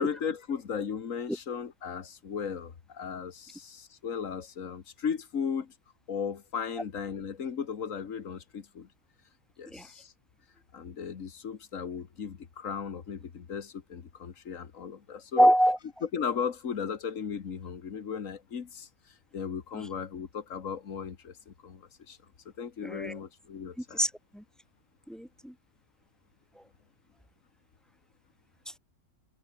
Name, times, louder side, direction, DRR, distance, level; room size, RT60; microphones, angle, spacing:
voice 1, 0.0-5.7 6.1-8.9 9.6-10.1 10.7-15.5 16.0-18.9 19.3-22.2 22.6-24.0, left 7 dB, 80° left, 1.9 m, -36 dB
voice 2, 15.4-15.8 19.7-19.9 22.8-23.2 23.9-24.4 25.1-25.5, equal, ahead, 1.9 m, -25 dB
omnidirectional pair, 1.4 m